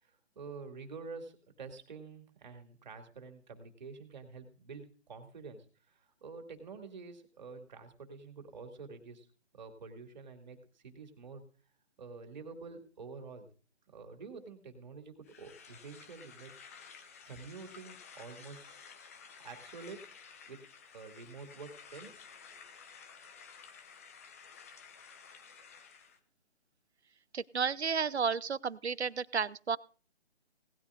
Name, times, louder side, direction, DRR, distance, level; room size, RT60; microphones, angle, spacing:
voice 1, 0.0-9.3 9.5-11.4 12.0-13.5 13.9-16.8 17.3-18.7 19.4-20.0 20.5-20.6 20.9-22.3, right 4 dB, 40° right, 5 dB, 2.6 m, -48 dB
sound 1, 15.2-26.2, left 6 dB, 15° left, 0.7 m, -53 dB
voice 2, 27.3-29.8, right 6 dB, 75° right, 21 dB, 0.7 m, -32 dB
18.5 x 14.0 x 2.5 m, 0.38 s
figure-of-eight pair, 145°, 33 cm